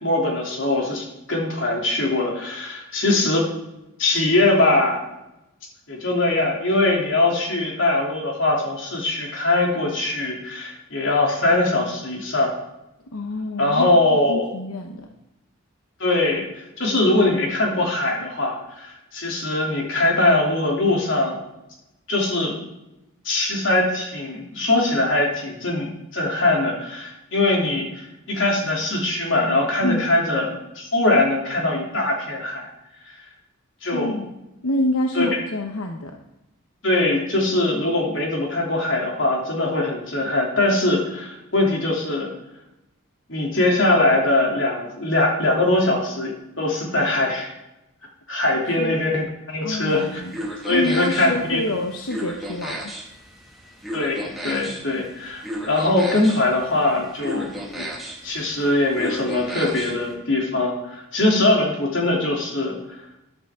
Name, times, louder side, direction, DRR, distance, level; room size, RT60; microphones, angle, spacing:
voice 1, 0.0-3.4 4.0-5.1 5.9-12.5 13.6-14.5 16.0-21.4 22.1-22.6 23.2-32.7 33.8-34.1 35.1-35.3 36.8-42.3 43.3-47.5 48.3-50.2 50.6-51.6 53.9-57.9 58.2-62.7, left 2 dB, 60° left, -1 dB, 3.0 m, -22 dB
voice 2, 13.1-15.1 29.8-30.1 33.9-36.2 48.7-48.9 49.6-50.3 50.7-52.9, left 1 dB, 90° left, 3 dB, 1.0 m, -27 dB
sound 1, 49.9-60.1, right 1 dB, ahead, 2.1 m, -35 dB
13.5 x 11.0 x 3.7 m, 0.91 s
head